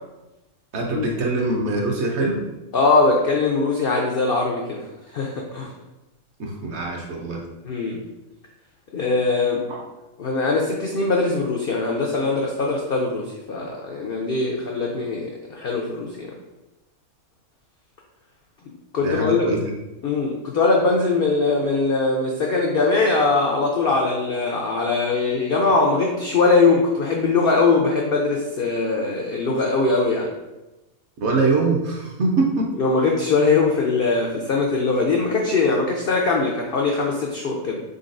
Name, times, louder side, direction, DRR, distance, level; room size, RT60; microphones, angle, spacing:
voice 1, 0.7-2.4 6.4-7.4 9.7-9.8 19.0-19.7 31.2-32.7, right 3 dB, 60° right, 0 dB, 0.8 m, -23 dB
voice 2, 2.7-4.8 5.1-5.7 7.6-8.0 8.9-9.6 10.2-16.3 18.9-19.5 20.0-30.3 32.8-37.8, left 3 dB, 75° left, 0 dB, 0.5 m, -21 dB
3.9 x 3.9 x 2.5 m, 1.0 s
omnidirectional pair, 1.5 m